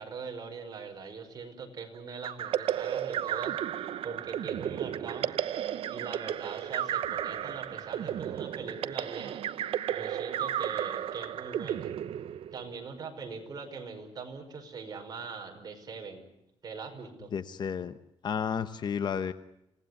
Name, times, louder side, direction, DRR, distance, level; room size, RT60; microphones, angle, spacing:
voice 1, 0.0-5.4 5.9-9.4 9.9-11.9 12.5-16.3 16.6-17.3, right 5 dB, 40° right, 4 dB, 5.5 m, -42 dB
sound 1, 2.2-12.8, right 10 dB, 70° right, 0.9 m, -33 dB
voice 2, 17.3-18.0 18.2-19.3, left 7 dB, 50° left, 11 dB, 1.0 m, -32 dB
28.0 x 18.0 x 9.7 m, 0.83 s
cardioid pair, 145°, 10 cm